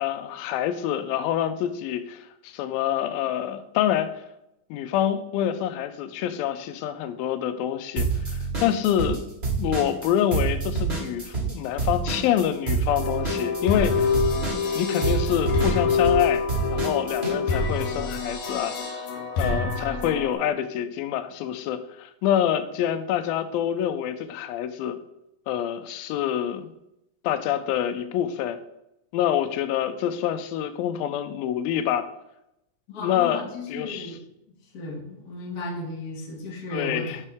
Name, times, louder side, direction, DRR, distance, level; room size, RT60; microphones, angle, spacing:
voice 1, 0.0-4.1 4.7-9.3 9.6-14.1 14.8-16.4 16.7-19.1 19.4-25.0 25.5-26.7 27.2-28.6 29.1-32.1 33.0-34.2 36.7-37.2, left 10 dB, 90° left, 10 dB, 2.4 m, -26 dB
sound 1, 8.0-9.2 9.4-17.3, right 4 dB, 25° right, 1.1 m, -27 dB
sound 2, 12.9-20.3, left 4 dB, 75° left, 2.6 m, -26 dB
voice 2, 32.9-34.2 34.7-37.2, left 2 dB, 50° left, -3 dB, 1.1 m, -34 dB
7.1 x 5.5 x 3.5 m, 0.83 s
omnidirectional pair, 4.1 m